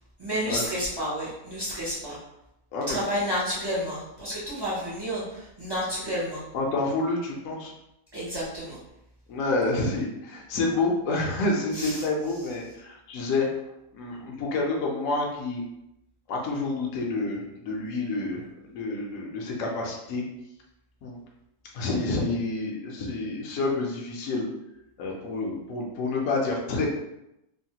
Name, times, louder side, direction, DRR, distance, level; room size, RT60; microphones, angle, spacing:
voice 1, 0.2-2.2 2.9-6.4 8.1-8.8 11.7-12.0, equal, 35° right, -9 dB, 0.4 m, -30 dB
voice 2, 6.5-7.7 9.3-13.5 13.9-15.6 16.3-20.2 21.0-21.2 21.7-24.5 25.0-26.9, left 2 dB, 65° left, -1 dB, 0.9 m, -28 dB
3.1 x 2.1 x 2.8 m, 0.87 s
omnidirectional pair, 1.6 m